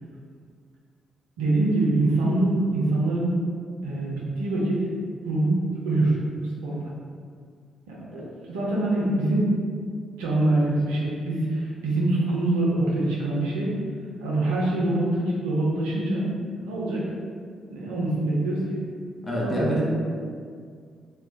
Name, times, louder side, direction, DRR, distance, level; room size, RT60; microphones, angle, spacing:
voice 1, 1.4-3.3 3.8-4.8 5.2-5.6 5.8-6.2 6.6-6.9 7.9-8.2 8.5-9.6 10.2-13.8 14.2-16.3 16.6-17.1 17.7-18.8 19.4-19.8, right 2 dB, 75° right, -5 dB, 0.5 m, -24 dB
voice 2, 19.2-19.8, equal, 30° left, -5 dB, 0.8 m, -26 dB
2.2 x 2.0 x 3.7 m, 2.1 s
figure-of-eight pair, 40°, 0 cm